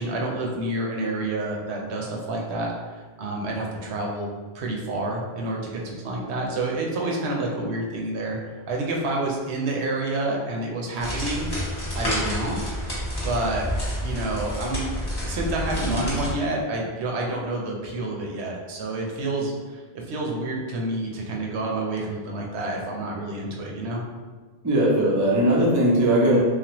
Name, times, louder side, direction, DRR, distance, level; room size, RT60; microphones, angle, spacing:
voice 1, 0.0-2.7 3.2-4.3 4.5-8.4 8.7-11.6 11.9-12.6 13.2-13.7 14.0-14.9 15.2-24.0, right 2 dB, 85° right, -1 dB, 0.9 m, -28 dB
sound 1, 11.0-16.3, equal, 25° left, 0.8 m, -29 dB
voice 2, 24.6-26.4, right 1 dB, 30° right, -4 dB, 0.4 m, -19 dB
3.3 x 2.1 x 2.9 m, 1.4 s
omnidirectional pair, 1.1 m